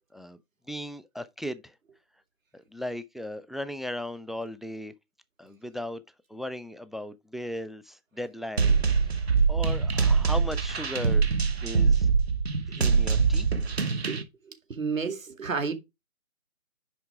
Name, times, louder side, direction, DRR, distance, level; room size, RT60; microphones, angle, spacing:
voice 1, 0.7-1.7 2.5-4.9 5.4-6.0 6.3-8.8 9.5-11.2 11.6-12.1 12.7-13.5, left 1 dB, ahead, 0.3 m, -37 dB
sound 1, 8.6-14.2, right 5 dB, 50° right, 1.2 m, -24 dB
voice 2, 14.7-15.7, right 5 dB, 70° right, 2.3 m, -30 dB
10.0 x 3.5 x 4.7 m
hypercardioid pair, 175°, 41 cm